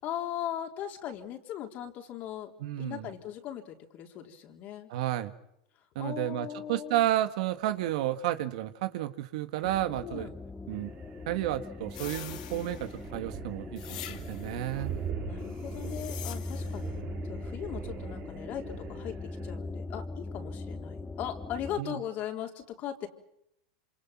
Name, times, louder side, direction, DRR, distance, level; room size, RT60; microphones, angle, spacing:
voice 1, 0.0-2.5 2.8-4.9 6.0-7.1 10.0-10.3 14.8-14.9 15.3-23.1, left 10 dB, 45° left, 3 dB, 3.8 m, -39 dB
voice 2, 2.6-3.1 4.9-5.3 6.0-10.3 10.7-10.9 11.3-14.9 21.8-22.0, right 13 dB, 70° right, 10 dB, 1.8 m, -31 dB
sound 1, 9.6-21.8, left 3 dB, 15° left, 1.9 m, -40 dB
sound 2, 10.7-19.6, right 8 dB, 45° right, 3.5 m, -43 dB
sound 3, 11.9-13.1 13.8-14.6 15.6-16.9, left 12 dB, 75° left, 2.4 m, -45 dB
27.0 x 26.5 x 6.0 m, 0.80 s
hypercardioid pair, 120°, 4 cm